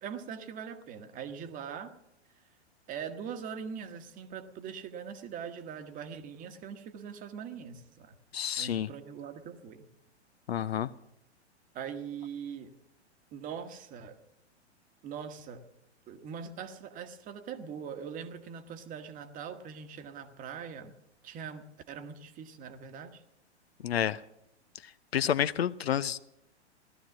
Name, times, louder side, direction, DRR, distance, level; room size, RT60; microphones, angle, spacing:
voice 1, 0.0-1.9 2.9-8.2 8.6-9.9 11.7-12.7 13.3-14.2 15.0-15.6 16.1-20.9 21.2-23.2, right 7 dB, 25° right, 9 dB, 1.2 m, -42 dB
voice 2, 8.3-8.9 10.5-10.9 23.8-24.2 25.1-26.2, left 9 dB, 60° left, 16 dB, 0.6 m, -29 dB
17.0 x 13.0 x 6.2 m, 0.81 s
figure-of-eight pair, 105°, 34 cm